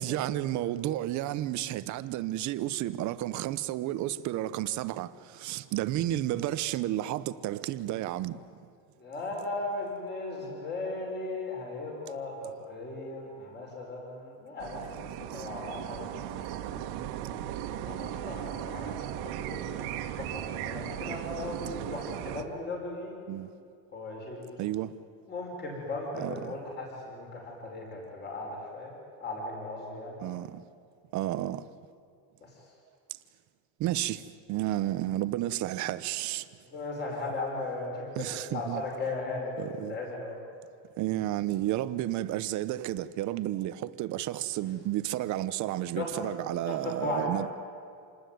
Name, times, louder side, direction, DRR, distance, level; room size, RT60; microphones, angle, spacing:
voice 1, 0.0-8.4 15.3-15.4 23.3-23.5 24.6-24.9 26.1-26.5 30.2-30.6 31.1-31.6 33.8-36.5 38.2-38.8 39.6-40.0 41.0-47.5, right 14 dB, 45° right, 1.0 m, -32 dB
voice 2, 9.0-14.9 15.3-16.1 17.7-19.0 19.2-19.9 20.2-23.2 23.9-24.6 25.3-28.9 29.2-30.2 32.4-32.5 36.7-38.3 38.5-40.4 46.0-46.1 46.7-47.3, left 2 dB, 25° left, 5.8 m, -37 dB
sound 1, 14.6-22.4, right 11 dB, 75° right, 2.0 m, -37 dB
27.5 x 20.0 x 9.4 m
cardioid pair, 175°, 42 cm